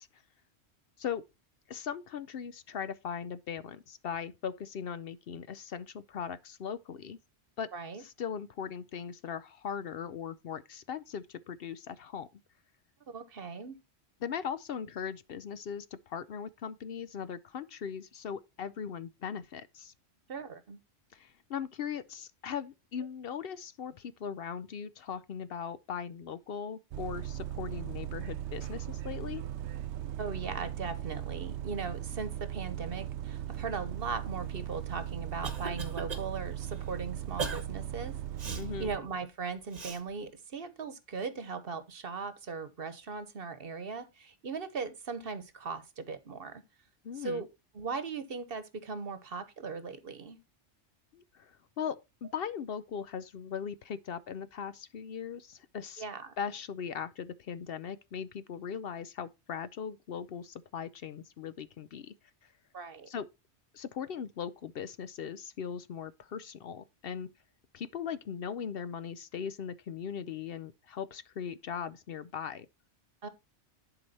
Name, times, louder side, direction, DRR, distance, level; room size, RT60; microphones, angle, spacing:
voice 1, 1.7-7.2 7.6-7.7 8.0-12.3 14.2-19.9 21.1-29.4 38.5-38.9 47.0-47.4 51.1-56.0 56.4-62.1 62.4-62.5 63.1-63.3 63.7-67.3 67.7-72.7, left 7 dB, 60° left, 0.8 m, -39 dB
voice 2, 7.7-8.0 13.1-13.8 20.3-20.8 30.2-38.2 38.5-46.6 47.2-47.5 47.7-50.4 56.0-56.3 62.7-63.1 73.2-73.3, right 4 dB, 55° right, 1.2 m, -39 dB
Bus, 26.9-39.0, right 11 dB, 75° right, 0.9 m, -38 dB
Cough, 34.8-36.3 36.7-36.8 37.4-37.6 38.4-38.7 39.7-40.0, right 5 dB, 35° right, 1.2 m, -37 dB
11.0 x 4.9 x 4.1 m
omnidirectional pair, 1.2 m